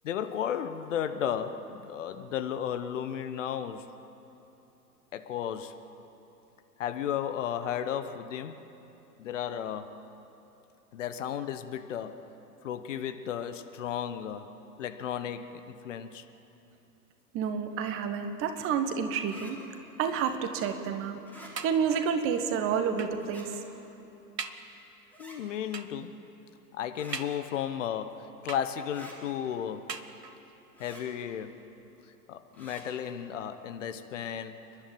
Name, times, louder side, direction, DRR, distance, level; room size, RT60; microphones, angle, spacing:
voice 1, 0.0-3.9 5.1-5.8 6.8-8.6 9.2-10.0 10.9-12.3 12.6-16.3 25.2-26.2 26.7-30.0 30.8-31.6 32.3-34.6, left 9 dB, 50° left, 10 dB, 1.2 m, -34 dB
voice 2, 17.3-19.6 20.0-23.5, right 7 dB, 25° right, 7 dB, 1.6 m, -29 dB
sound 1, 19.2-19.5 21.2-21.5 23.2-23.5 25.1-25.4 26.9-27.2 28.9-29.2 30.7-31.0 32.5-32.8, right 1 dB, 5° left, 4.0 m, -49 dB
sound 2, 21.6-22.2 23.0-23.3 23.8-23.9 24.4-24.8 25.7-26.1 27.1-27.8 28.5-29.1 29.9-30.6 31.4-31.5 31.8-31.9, right 5 dB, 75° right, 1.3 m, -41 dB
30.0 x 11.5 x 9.1 m, 3.0 s
figure-of-eight pair, 105°, 49 cm